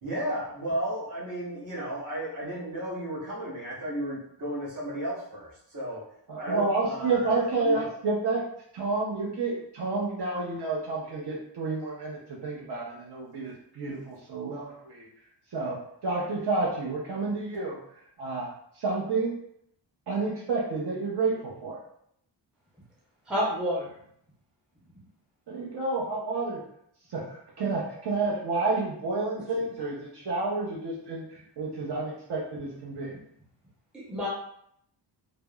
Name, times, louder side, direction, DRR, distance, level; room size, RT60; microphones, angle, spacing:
voice 1, 0.0-6.0 6.4-7.9, right 1 dB, 45° right, -7 dB, 1.1 m, -34 dB
voice 2, 6.3-8.4 8.7-15.1 15.5-15.8 16.0-17.8 18.2-18.5 18.7-19.4 20.1-21.8 25.5-26.6 27.1-33.1, right 3 dB, 60° right, -5 dB, 0.6 m, -30 dB
voice 3, 23.3-23.9 33.9-34.3, equal, ahead, -6 dB, 0.4 m, -28 dB
3.3 x 2.0 x 2.2 m, 0.71 s
wide cardioid pair, 180°, 45 cm